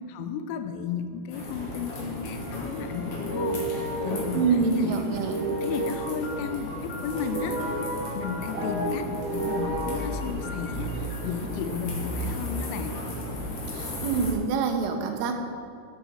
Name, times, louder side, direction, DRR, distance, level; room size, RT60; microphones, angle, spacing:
voice 1, 0.1-5.0 5.6-7.8 8.2-13.0, left 7 dB, 90° left, 8 dB, 3.1 m, -34 dB
sound 1, 1.3-14.3, left 1 dB, 65° left, 1.5 m, -35 dB
sound 2, 2.0-10.0, right 1 dB, 45° right, 2.9 m, -33 dB
sound 3, 2.2-4.4 5.8-8.4 9.8-11.3, left 2 dB, 45° left, 2.4 m, -43 dB
voice 2, 4.3-5.4 13.7-15.4, right 5 dB, 85° right, 5 dB, 3.4 m, -26 dB
10.0 x 9.9 x 4.4 m, 2.5 s
omnidirectional pair, 5.6 m